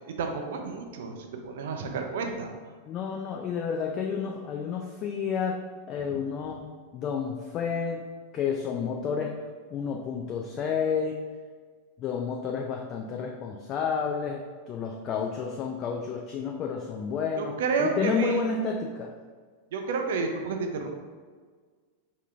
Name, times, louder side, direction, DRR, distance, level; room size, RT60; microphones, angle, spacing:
voice 1, 0.1-2.5 17.4-18.4 19.7-20.9, right 4 dB, 55° right, 3 dB, 0.5 m, -30 dB
voice 2, 2.9-5.6 5.9-6.7 6.9-8.0 8.3-9.3 9.7-11.1 12.0-19.1, left 6 dB, 35° left, 1 dB, 0.4 m, -30 dB
4.7 x 2.8 x 3.4 m, 1.6 s
figure-of-eight pair, 90°, 0 cm